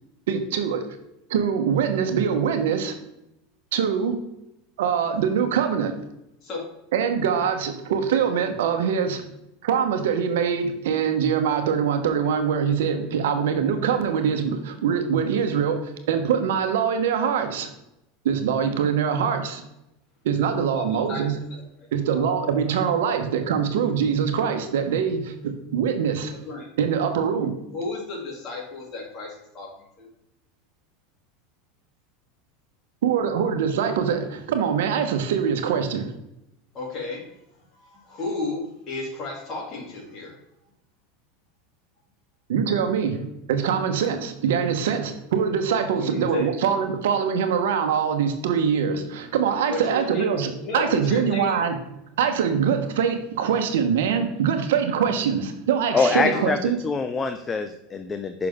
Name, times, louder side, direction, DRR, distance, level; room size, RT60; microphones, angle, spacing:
voice 1, 0.3-0.8 1.3-2.9 3.7-4.2 4.8-5.9 6.9-9.2 9.6-17.7 18.2-19.6 20.2-21.4 21.9-26.4 26.8-27.5 33.0-36.1 42.5-51.8 52.2-56.8, right 7 dB, 80° right, 6 dB, 1.1 m, -23 dB
voice 2, 21.5-21.9 22.2-22.3 26.5-26.7 27.7-30.1 36.7-37.3 37.7-40.4 45.9-46.5 49.7-51.7 54.1-54.3 55.9-56.5, left 2 dB, 40° left, -1 dB, 2.8 m, -33 dB
voice 3, 55.9-56.6 56.8-58.5, left 4 dB, 20° left, 8 dB, 0.5 m, -24 dB
6.4 x 5.9 x 3.6 m, 0.86 s
supercardioid pair, 115°, 0 cm